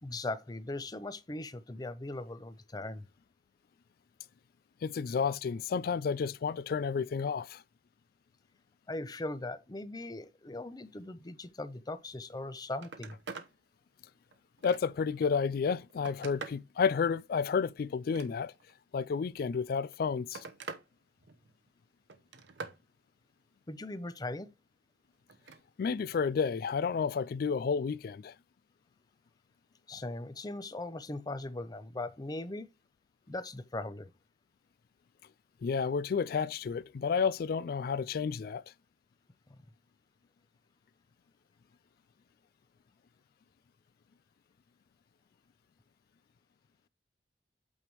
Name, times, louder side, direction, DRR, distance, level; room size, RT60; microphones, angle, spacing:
voice 1, 0.0-3.0 8.9-13.2 23.7-24.5 29.9-32.7 33.3-34.1 39.5-39.6, left 2 dB, 25° left, 0.6 m, -39 dB
voice 2, 4.8-7.6 14.6-18.5 18.9-20.4 25.8-28.3 35.6-38.6, left 6 dB, 55° left, 0.3 m, -31 dB
Telephone, 12.3-12.4 12.7-13.5 14.0-15.1 15.7-16.7 17.9-18.7 19.7-20.9 21.2-21.7 22.1-22.8 25.3-25.6 27.0-27.2, right 4 dB, 90° right, 1.0 m, -46 dB
8.5 x 3.4 x 4.6 m
head